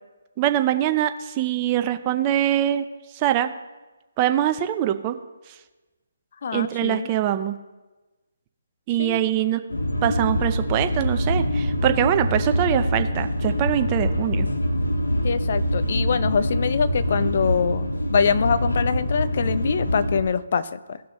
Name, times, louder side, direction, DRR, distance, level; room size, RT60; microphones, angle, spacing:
voice 1, 0.4-2.9 3.1-3.5 4.2-5.2 6.5-7.5 8.9-9.6 10.0-14.5, right 12 dB, 25° right, 9 dB, 0.6 m, -23 dB
voice 2, 6.4-7.1 9.0-9.2 15.2-21.0, left 6 dB, 50° left, 13 dB, 0.5 m, -24 dB
sound 1, 9.7-20.2, equal, 85° left, 1.1 m, -24 dB
17.0 x 6.0 x 3.1 m, 1.2 s
figure-of-eight pair, 145°, 0 cm